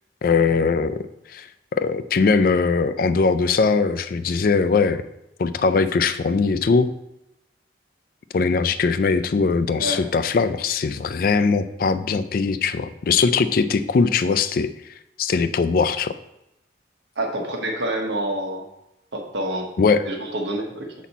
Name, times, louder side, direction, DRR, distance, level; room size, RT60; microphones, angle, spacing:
voice 1, 0.2-1.0 1.3-5.0 5.4-6.9 8.3-14.7 15.2-16.1 19.8-20.1, left 4 dB, 50° left, 11 dB, 0.3 m, -20 dB
voice 2, 9.7-10.1 17.2-18.7 19.1-19.7 20.1-20.9, right 1 dB, 70° right, 2 dB, 1.1 m, -27 dB
7.1 x 4.2 x 4.1 m, 0.88 s
head